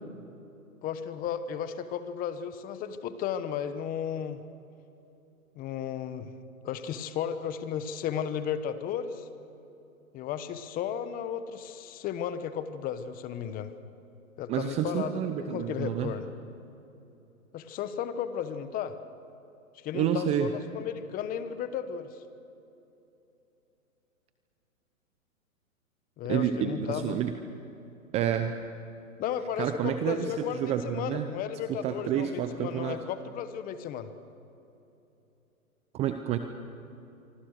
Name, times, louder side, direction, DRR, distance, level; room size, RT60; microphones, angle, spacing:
voice 1, 0.8-4.4 5.5-6.3 6.6-9.3 10.1-13.7 14.4-16.3 17.5-19.0 19.8-22.2 26.2-27.2 29.2-34.1, left 8 dB, 20° left, 11 dB, 1.1 m, -34 dB
voice 2, 14.5-16.1 19.9-20.5 26.3-27.3 28.1-28.5 29.6-31.3 31.8-33.0 35.9-36.4, right 9 dB, 15° right, 8 dB, 0.6 m, -29 dB
26.5 x 24.5 x 6.5 m, 3.0 s
hypercardioid pair, 135°, 42 cm